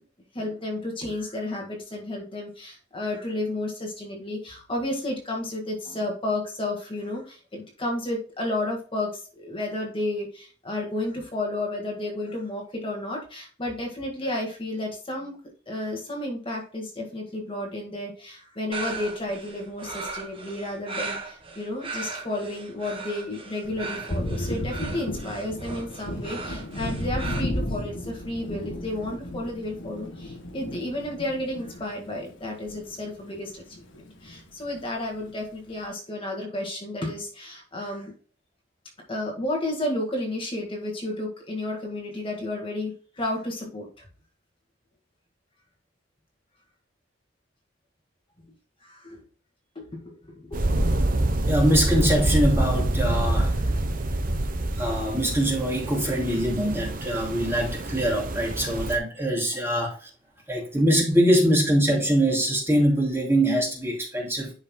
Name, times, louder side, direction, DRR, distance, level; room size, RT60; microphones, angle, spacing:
voice 1, 0.3-15.4 15.7-38.1 39.1-44.1 48.8-49.2 49.7-50.9 53.5-53.8 59.7-59.9, left 1 dB, 30° left, 1.7 m, -32 dB
sound 1, 18.7-27.4, right 4 dB, 30° right, 1.4 m, -37 dB
Thunder, 23.6-33.4 33.7-34.9, left 1 dB, 80° left, 1.8 m, -34 dB
sound 2, 50.5-59.0, right 1 dB, 45° right, 0.9 m, -26 dB
voice 2, 51.5-53.5 54.8-60.1 60.5-64.5, equal, 15° right, 2.6 m, -23 dB
11.0 x 5.6 x 2.2 m
head